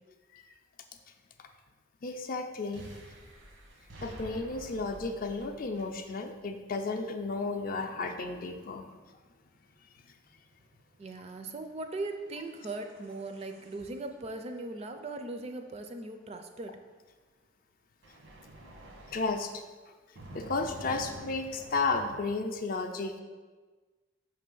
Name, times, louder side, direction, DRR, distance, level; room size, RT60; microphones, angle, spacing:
voice 1, 2.0-2.9 4.0-9.0 19.1-19.6 20.3-23.2, left 3 dB, 45° left, 6 dB, 0.4 m, -33 dB
sound 1, 2.7-6.4 8.2-16.7 18.0-19.7 20.2-22.2, right 1 dB, 85° right, 1.1 m, -50 dB
voice 2, 11.0-16.7, right 2 dB, 35° right, 6 dB, 0.4 m, -39 dB
5.4 x 3.3 x 5.3 m, 1.3 s
head